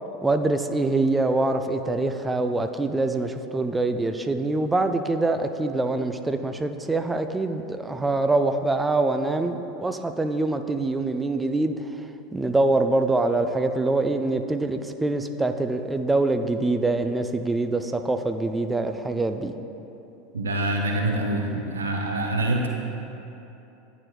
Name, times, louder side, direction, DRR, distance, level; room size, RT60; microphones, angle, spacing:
voice 1, 0.2-19.5, right 2 dB, 10° right, 7 dB, 0.3 m, -24 dB
voice 2, 20.3-22.7, right 1 dB, 75° right, 1 dB, 0.4 m, -25 dB
9.5 x 5.0 x 2.3 m, 2.9 s
figure-of-eight pair, 80°, 0 cm